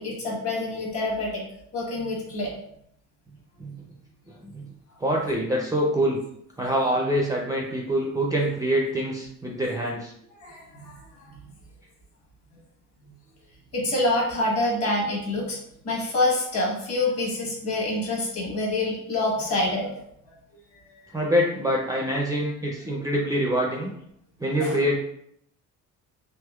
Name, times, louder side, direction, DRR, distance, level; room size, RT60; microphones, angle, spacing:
voice 1, 0.0-1.4 1.7-2.5 10.4-11.0 11.2-11.4 13.7-15.6 15.8-20.0 20.9-21.0 24.6-24.7, left 2 dB, 45° left, -3 dB, 1.3 m, -26 dB
voice 2, 5.0-6.2 6.6-10.1 21.1-23.9 24.4-25.0, equal, 10° right, -2 dB, 0.3 m, -25 dB
3.5 x 2.8 x 2.2 m, 0.72 s
cardioid pair, 115°, 33 cm